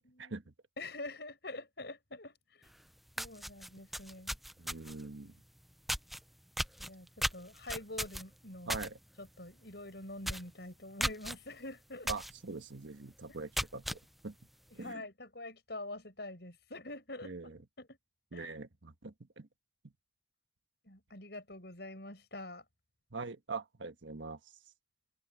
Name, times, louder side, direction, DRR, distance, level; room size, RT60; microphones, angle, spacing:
voice 1, 0.0-0.4 0.8-2.7 3.2-4.4 6.8-8.8 9.2-12.1 13.3-13.4 14.8-17.3 17.8-18.0 18.3-18.5 20.8-22.6, left 2 dB, 60° left, 7.2 m, -46 dB
sound 1, 2.7-2.8 3.1-5.0 5.9-6.2 6.6-8.9 9.2-9.5 9.8-9.9 10.2-10.5 11.0-11.3 12.1-12.3 12.8-12.9 13.3-14.0, equal, ahead, 0.6 m, -36 dB
voice 2, 4.6-5.3 8.7-9.0 12.1-14.3 14.7-15.0 17.2-17.6 18.3-19.5 23.1-24.4, right 3 dB, 85° right, 1.4 m, -43 dB
open air
head